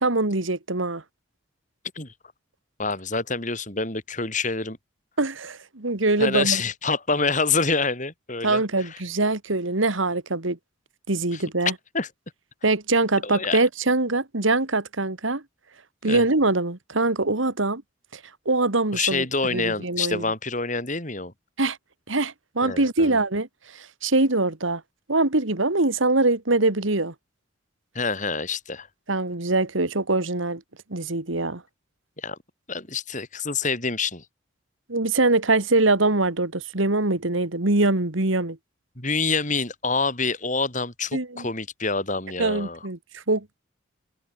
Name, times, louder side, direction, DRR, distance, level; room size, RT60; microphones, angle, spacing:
voice 1, 0.0-1.0 5.2-6.6 8.4-10.6 11.1-11.7 12.6-15.4 16.0-17.8 18.1-18.2 18.5-19.3 19.5-20.2 21.6-21.8 22.1-24.8 25.1-27.1 29.1-30.6 30.9-31.6 34.9-38.6 41.1-41.5 42.4-43.6, right 2 dB, 75° right, 2.2 m, -23 dB
voice 2, 2.8-4.8 6.2-9.0 11.3-11.4 11.9-12.1 13.2-13.6 16.0-16.2 18.9-21.3 22.6-23.2 27.9-28.9 32.2-32.4 32.7-34.2 39.0-42.8, left 4 dB, 40° left, 6.3 m, -27 dB
head